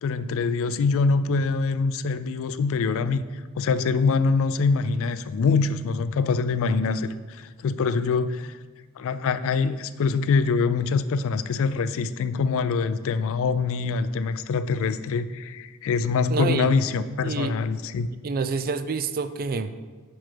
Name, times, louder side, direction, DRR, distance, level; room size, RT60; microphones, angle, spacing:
voice 1, 0.0-3.2 3.6-8.6 9.0-18.1, left 4 dB, 65° left, 13 dB, 0.3 m, -24 dB
voice 2, 16.3-16.7 17.2-17.6 18.2-19.8, right 4 dB, 40° right, 12 dB, 0.4 m, -27 dB
7.7 x 6.2 x 3.3 m, 1.4 s
head